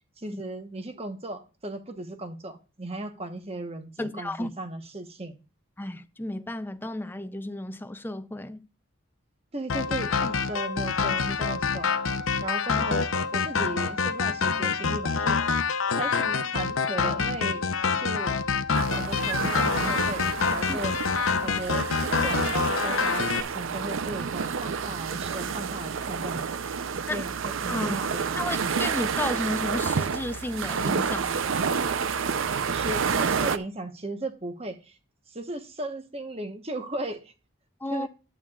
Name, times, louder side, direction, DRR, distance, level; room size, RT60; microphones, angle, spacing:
voice 1, 0.2-5.3 9.5-11.9 12.4-15.4 16.0-17.7 18.0-18.4 19.0-20.9 21.4-26.6 27.1-28.4 32.7-35.0 35.3-37.3 37.9-38.1, right 2 dB, 30° right, 1.1 m, -36 dB
voice 2, 4.0-4.5 5.8-8.7 20.7-20.8 27.1-27.3 27.7-31.4 37.8-38.1, left 1 dB, 10° left, 0.4 m, -33 dB
sound 1, 9.7-23.4, left 5 dB, 75° left, 0.7 m, -26 dB
sound 2, 18.7-33.6, right 6 dB, 70° right, 0.5 m, -29 dB
11.5 x 8.7 x 2.4 m
head